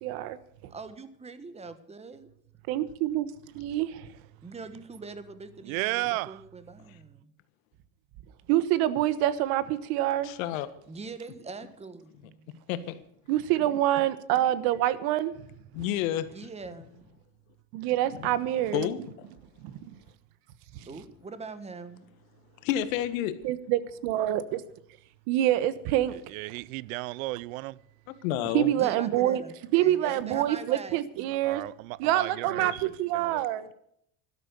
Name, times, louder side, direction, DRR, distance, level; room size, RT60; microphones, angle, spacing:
voice 1, 0.0-0.4 2.7-3.3 3.6-4.1 8.5-10.3 13.3-15.3 17.7-18.9 19.6-20.0 23.4-24.6 25.3-26.2 28.5-29.4 29.7-31.6 32.0-33.7, right 13 dB, 65° right, 1.3 m, -26 dB
voice 2, 0.7-2.3 4.4-7.3 10.9-12.7 16.2-17.1 20.9-22.0 28.7-31.0, right 4 dB, 15° right, 1.5 m, -43 dB
voice 3, 5.6-6.4 26.3-27.8 31.4-33.5, right 21 dB, 85° right, 0.6 m, -34 dB
voice 4, 10.2-10.7 12.7-13.0 15.7-16.3 18.2-18.3 18.7-19.3 22.6-23.3 28.2-28.7 32.6-32.7, left 12 dB, 85° left, 1.6 m, -30 dB
13.0 x 12.0 x 6.8 m
supercardioid pair, 120°, 39 cm